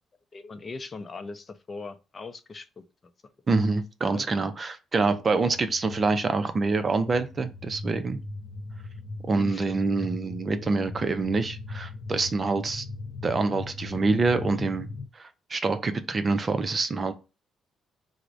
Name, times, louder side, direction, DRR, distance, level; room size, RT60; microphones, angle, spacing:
voice 1, 0.3-2.8 4.1-4.3 9.4-9.6, left 3 dB, 35° left, 0.5 m, -39 dB
voice 2, 3.5-8.2 9.3-12.9 13.2-14.9 15.1-17.1, right 3 dB, 35° right, 0.4 m, -26 dB
sound 1, 5.0-15.1, left 3 dB, 70° left, 0.8 m, -39 dB
4.5 x 2.1 x 2.5 m
cardioid pair, 90°, 0 cm